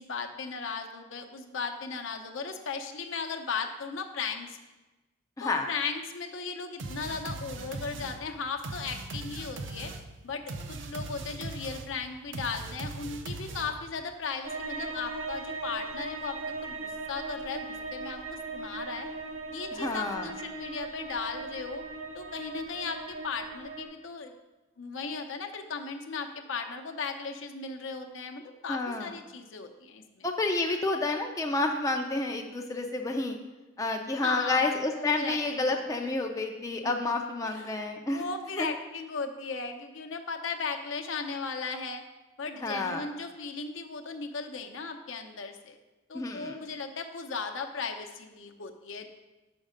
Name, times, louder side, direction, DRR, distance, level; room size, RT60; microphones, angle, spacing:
voice 1, 0.0-4.6 5.4-9.9 10.2-16.8 17.1-19.1 19.5-21.8 22.1-24.3 24.8-30.3 34.2-35.8 36.8-36.9 37.5-37.8 38.1-42.0 42.4-45.8 46.1-49.0, left 5 dB, 65° left, 4 dB, 0.7 m, -37 dB
sound 1, 6.8-14.0, right 2 dB, 65° right, 0.5 m, -40 dB
sound 2, 14.4-23.8, right 3 dB, 80° right, 0.9 m, -38 dB
voice 2, 19.7-20.3 28.7-29.1 30.2-33.4 33.8-38.2 38.6-38.7 42.6-43.0 46.1-46.6, left 2 dB, 15° left, 2 dB, 0.4 m, -29 dB
6.4 x 5.2 x 5.1 m, 1.1 s
head